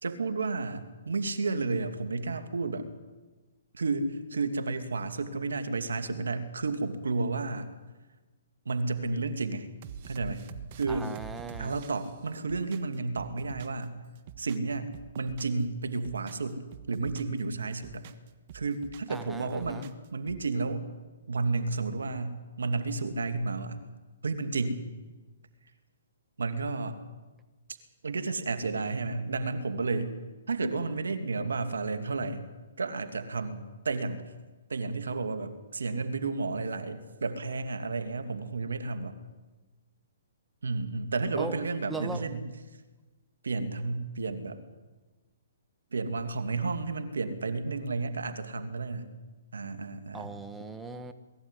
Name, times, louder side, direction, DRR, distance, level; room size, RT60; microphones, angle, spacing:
voice 1, 0.0-2.9 3.7-7.7 8.7-9.7 10.1-10.4 10.8-11.1 11.6-14.0 14.4-14.9 15.1-16.6 16.9-18.0 18.5-20.9 21.3-23.8 24.2-24.8 26.4-27.0 28.0-30.2 30.5-32.5 32.8-34.2 34.7-39.2 40.6-42.4 43.4-44.6 45.9-49.2 49.5-50.3, right 3 dB, 85° right, 9 dB, 2.4 m, -32 dB
sound 1, 9.8-13.9 14.2-15.6 15.9-17.4 17.7-19.2 19.5-20.5, right 9 dB, 45° right, 1.4 m, -46 dB
voice 2, 10.9-11.7 19.1-19.9 41.4-41.6 41.9-42.2 50.1-51.1, right 4 dB, 10° right, 8 dB, 1.1 m, -38 dB
21.0 x 14.5 x 9.9 m, 1.2 s
hypercardioid pair, 140°, 0 cm